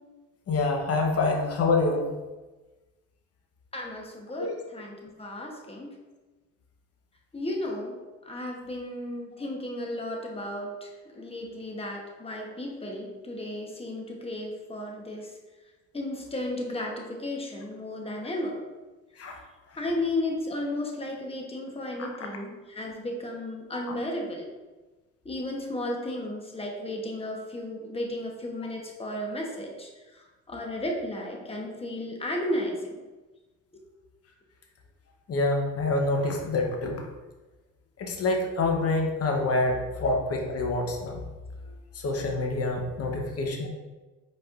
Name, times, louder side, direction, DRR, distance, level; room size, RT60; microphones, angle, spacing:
voice 1, 0.5-2.1 4.4-4.5 19.2-19.3 35.3-37.0 38.0-41.2 42.0-43.7, left 2 dB, 55° left, 2 dB, 0.9 m, -26 dB
voice 2, 3.7-5.9 7.3-8.0 8.2-15.3 15.9-18.6 19.8-24.5 25.2-29.9 30.1-33.0, left 1 dB, 20° left, 0 dB, 1.0 m, -34 dB
4.8 x 4.2 x 2.5 m, 1.2 s
cardioid pair, 90°, 30 cm